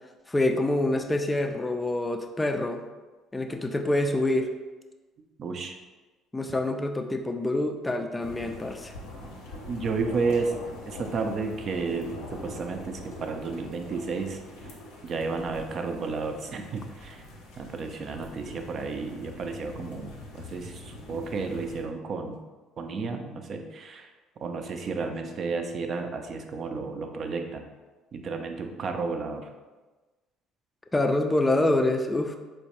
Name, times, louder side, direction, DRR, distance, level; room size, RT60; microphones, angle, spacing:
voice 1, 0.3-2.8 3.3-4.5 6.3-8.9 30.9-32.4, left 1 dB, 15° left, 5 dB, 0.3 m, -26 dB
voice 2, 5.4-5.8 9.7-10.5 10.9-14.4 15.0-17.2 17.6-22.4 22.8-24.1 24.4-27.7 28.1-29.5, right 4 dB, 50° right, 5 dB, 0.4 m, -32 dB
sound 1, 8.2-21.8, left 1 dB, 75° left, 0.7 m, -43 dB
4.4 x 2.1 x 2.9 m, 1.2 s
hypercardioid pair, 55°, 0 cm